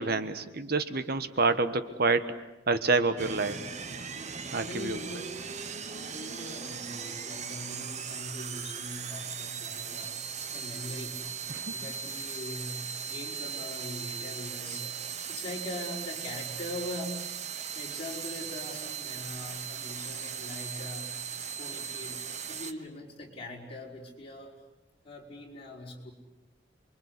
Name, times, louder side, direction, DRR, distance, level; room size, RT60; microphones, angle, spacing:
voice 1, 0.0-2.4 2.7-3.6 4.5-5.0 11.5-11.7, right 3 dB, 60° right, 11 dB, 1.3 m, -28 dB
sound 1, 3.2-22.7, right 7 dB, 40° right, 1.2 m, -38 dB
voice 2, 4.7-5.3 5.8-10.2 10.5-11.2 11.7-15.0 15.3-17.4 17.7-21.3 21.6-24.5 25.0-26.1, left 1 dB, 30° left, -1 dB, 5.4 m, -41 dB
29.0 x 23.0 x 8.3 m, 1.0 s
head